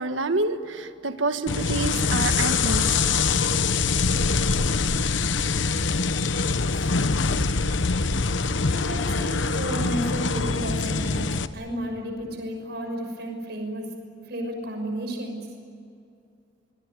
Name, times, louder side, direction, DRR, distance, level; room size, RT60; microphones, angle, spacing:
voice 1, 0.0-3.0, right 3 dB, 90° right, 8 dB, 1.7 m, -28 dB
sound 1, 1.5-11.5, left 4 dB, 80° left, 1.0 m, -24 dB
voice 2, 7.3-7.6 8.7-11.3 11.5-13.9 14.2-15.4, right 1 dB, 60° right, 3 dB, 6.2 m, -33 dB
25.0 x 22.0 x 9.6 m, 2.4 s
head